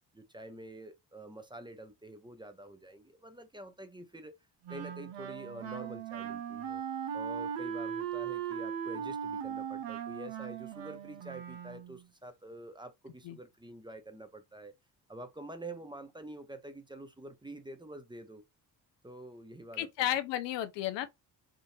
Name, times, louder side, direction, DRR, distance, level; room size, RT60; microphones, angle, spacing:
voice 1, 0.1-4.3 4.7-6.8 7.1-14.7 15.1-18.4 19.0-20.1, right 1 dB, 10° right, 0.8 m, -47 dB
Wind instrument woodwind instrument, 4.7-12.0, right 8 dB, 85° right, 0.8 m, -38 dB
voice 2, 19.8-21.1, left 13 dB, 85° left, 0.6 m, -32 dB
3.7 x 2.6 x 2.7 m
supercardioid pair, 60°, 42 cm